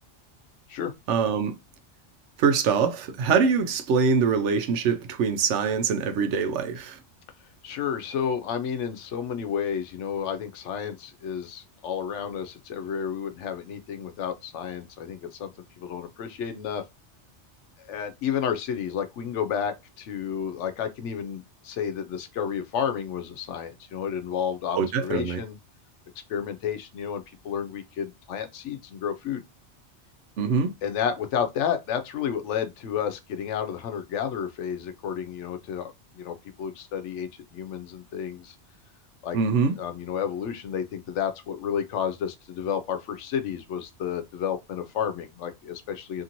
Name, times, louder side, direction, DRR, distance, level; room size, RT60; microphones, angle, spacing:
voice 1, 1.1-1.6 2.4-7.0 24.8-25.4 30.4-30.7 39.3-39.7, right 5 dB, 85° right, 0.9 m, -23 dB
voice 2, 7.6-15.5 15.8-16.8 17.8-25.6 26.3-29.4 30.8-38.5 39.2-39.4 39.8-46.2, left 8 dB, 90° left, 0.9 m, -31 dB
2.8 x 2.6 x 2.8 m
omnidirectional pair, 1.2 m